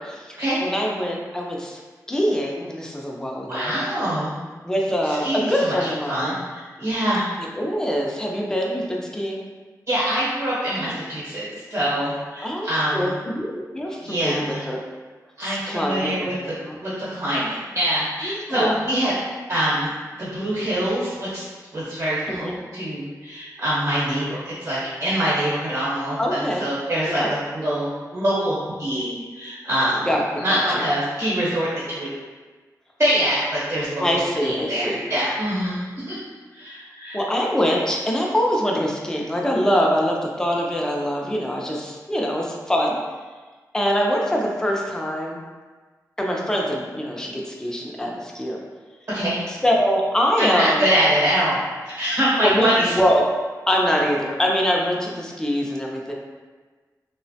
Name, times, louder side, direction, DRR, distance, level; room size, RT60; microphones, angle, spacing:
voice 1, 0.0-1.8 2.1-3.8 4.6-6.3 7.6-9.4 10.8-10.9 12.4-14.8 15.4-16.8 18.2-18.7 22.3-22.6 26.2-26.7 27.1-27.3 30.1-30.2 30.5-30.9 34.0-35.0 37.1-43.0 43.7-45.4 46.2-48.6 49.5-50.9 52.4-53.3 53.7-56.1, equal, 10° left, -1 dB, 0.4 m, -24 dB
voice 2, 3.5-4.4 5.1-7.3 9.9-13.1 14.0-14.7 15.4-16.5 16.8-19.1 19.5-19.9 20.2-21.5 21.7-30.1 30.4-32.1 33.0-36.2 36.5-37.2 49.1-49.4 50.4-53.0, equal, 45° right, -9 dB, 0.9 m, -24 dB
3.0 x 2.1 x 2.6 m, 1.4 s
wide cardioid pair, 130°, 7 cm